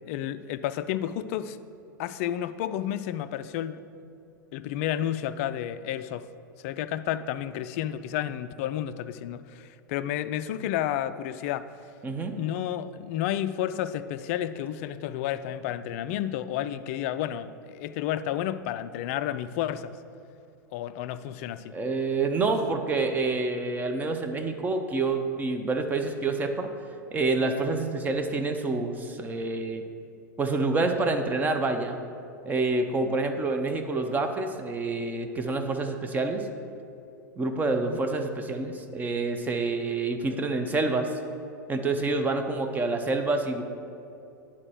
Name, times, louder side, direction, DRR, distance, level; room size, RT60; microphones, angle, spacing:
voice 1, 0.1-1.6 2.0-3.8 4.5-6.3 6.6-11.7 12.4-19.9 20.7-21.7 37.7-38.0, left 11 dB, 45° left, 13 dB, 0.4 m, -31 dB
voice 2, 12.0-12.4 21.7-26.7 27.1-29.8 30.4-32.0 32.4-36.5 37.4-41.1 41.7-43.6, right 3 dB, 15° right, 5 dB, 0.7 m, -27 dB
9.7 x 4.3 x 6.3 m, 2.6 s
figure-of-eight pair, 90°, 10 cm